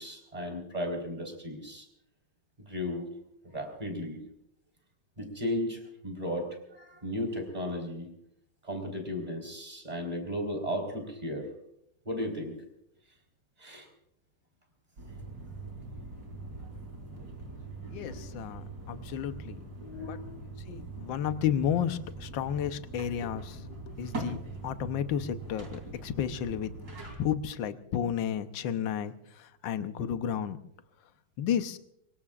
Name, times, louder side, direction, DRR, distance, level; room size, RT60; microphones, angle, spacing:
voice 1, 0.0-1.9 2.6-3.1 3.4-4.2 5.2-8.1 8.6-11.5 12.1-12.5 13.6-13.9 19.8-20.4, left 1 dB, 15° right, 3 dB, 4.3 m, -35 dB
sound 1, 15.0-27.2, right 2 dB, 50° right, 4.0 m, -42 dB
voice 2, 17.9-19.6 20.0-20.2 20.7-24.4 24.6-26.7 27.2-30.6 31.4-31.8, left 9 dB, 70° left, 10 dB, 1.6 m, -32 dB
25.0 x 23.5 x 2.5 m, 0.73 s
omnidirectional pair, 2.3 m